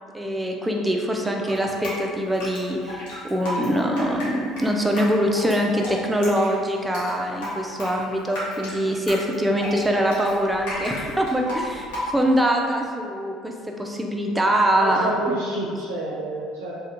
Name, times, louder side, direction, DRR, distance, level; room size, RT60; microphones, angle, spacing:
voice 1, 0.1-15.1, equal, 10° right, 1 dB, 0.4 m, -23 dB
Drip, 1.5-12.4, left 1 dB, 75° left, 0.8 m, -33 dB
voice 2, 14.8-16.8, right 1 dB, 90° right, -7 dB, 0.4 m, -29 dB
2.4 x 2.1 x 2.7 m, 2.1 s
hypercardioid pair, 70°, 0 cm